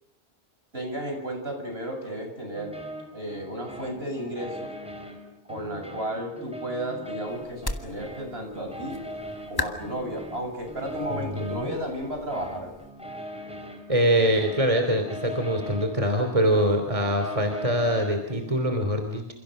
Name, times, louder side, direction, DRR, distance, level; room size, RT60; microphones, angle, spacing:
voice 1, 0.7-2.8 3.1-4.7 5.5-9.0 9.5-12.7, right 1 dB, 60° right, 3 dB, 8.1 m, -33 dB
sound 1, 2.5-18.8, equal, 5° right, 4.7 m, -41 dB
sound 2, 7.3-12.9, left 2 dB, 20° left, 2.2 m, -38 dB
voice 2, 11.1-11.7 13.9-19.3, equal, 30° right, 5 dB, 3.3 m, -24 dB
29.0 x 28.0 x 6.5 m, 0.78 s
omnidirectional pair, 1.2 m